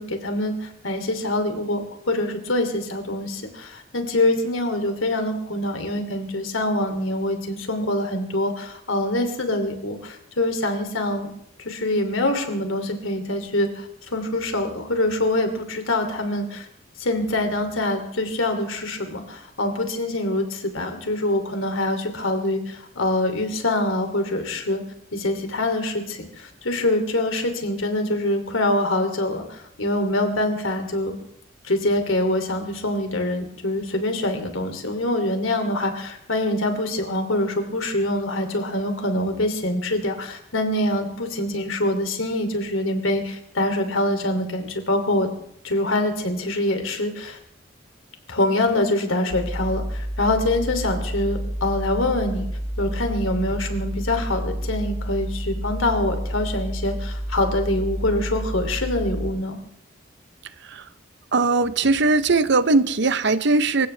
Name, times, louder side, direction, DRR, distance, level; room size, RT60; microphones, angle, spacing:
voice 1, 0.0-11.3 11.6-16.7 17.0-24.8 25.1-31.1 31.6-45.3 45.6-47.4 48.3-52.5 52.8-59.6, left 1 dB, 90° left, 5 dB, 2.9 m, -25 dB
sound 1, 49.3-59.3, equal, 35° right, 2.0 m, -29 dB
voice 2, 61.3-63.9, right 3 dB, 60° right, 13 dB, 0.8 m, -19 dB
26.0 x 16.0 x 3.4 m, 0.75 s
head